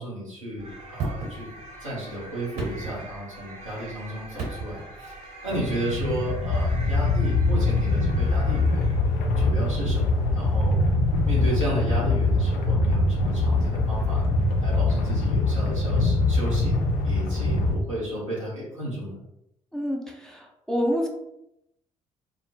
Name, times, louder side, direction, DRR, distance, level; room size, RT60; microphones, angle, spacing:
voice 1, 0.0-1.5 1.8-5.2 5.4-9.0 9.4-10.8 11.2-14.2 14.6-16.8 17.0-19.1, right 1 dB, 90° right, -8 dB, 0.7 m, -33 dB
sound 1, 0.6-9.2, right 1 dB, 45° right, 0.7 m, -44 dB
sound 2, 1.0-1.9 2.4-3.6 4.3-5.0 6.6-6.7, right 3 dB, 65° right, 1.1 m, -34 dB
sound 3, 5.5-17.8, left 2 dB, 60° left, 0.5 m, -23 dB
voice 2, 19.7-21.1, equal, 5° left, 0 dB, 0.5 m, -27 dB
2.1 x 2.0 x 3.0 m, 0.83 s
figure-of-eight pair, 40°, 16 cm